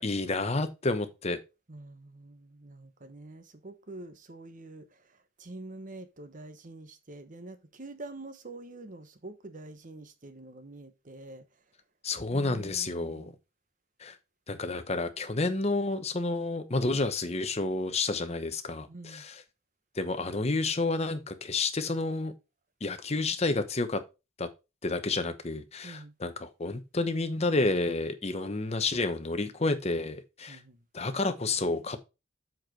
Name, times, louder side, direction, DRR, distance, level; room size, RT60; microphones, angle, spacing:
voice 1, 0.0-1.4 12.0-13.3 14.0-14.2 14.5-19.4 19.9-22.3 22.8-24.0 24.4-24.5 24.8-30.6 30.9-32.0, left 3 dB, 35° left, 0.9 m, -30 dB
voice 2, 1.7-11.4 12.3-13.4 18.9-19.3 25.8-26.1 30.5-30.9, right 2 dB, 45° right, 1.0 m, -46 dB
7.6 x 4.6 x 4.6 m
head